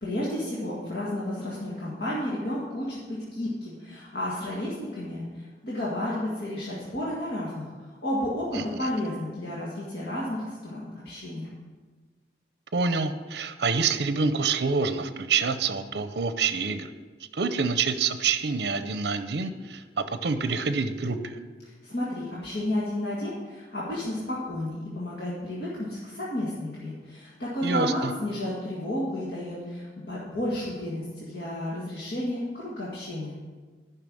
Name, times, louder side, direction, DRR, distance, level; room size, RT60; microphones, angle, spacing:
voice 1, 0.0-11.5 21.8-33.4, left 1 dB, 60° left, -6 dB, 1.8 m, -32 dB
voice 2, 8.5-8.9 12.7-16.9 17.3-21.4 27.6-28.1, right 4 dB, 60° right, 10 dB, 0.6 m, -27 dB
10.5 x 5.7 x 7.6 m, 1.4 s
head